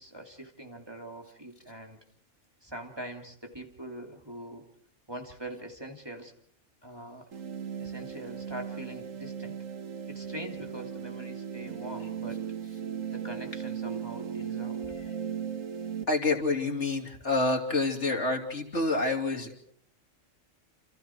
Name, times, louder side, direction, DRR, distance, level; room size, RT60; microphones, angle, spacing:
voice 1, 0.0-2.0 2.6-4.6 5.1-6.3 6.8-7.2 7.8-9.6 10.1-12.6 13.1-15.2, right 1 dB, 20° right, 2 dB, 2.9 m, -43 dB
sound 1, 7.3-16.0, right 8 dB, 90° right, 1.7 m, -37 dB
voice 2, 16.1-19.6, left 3 dB, 65° left, 3 dB, 3.5 m, -28 dB
29.5 x 28.0 x 4.6 m, 0.63 s
omnidirectional pair, 1.3 m